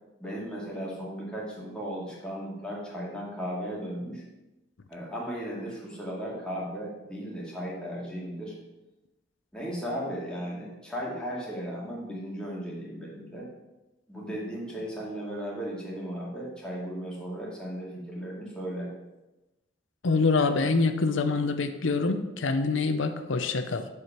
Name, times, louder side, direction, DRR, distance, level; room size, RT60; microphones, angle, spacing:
voice 1, 0.2-4.2 4.9-8.5 9.5-13.5 14.1-18.9, equal, 5° left, -5 dB, 2.1 m, -36 dB
voice 2, 20.0-23.9, left 3 dB, 90° left, 8 dB, 0.7 m, -25 dB
7.1 x 4.9 x 6.0 m, 1.0 s
head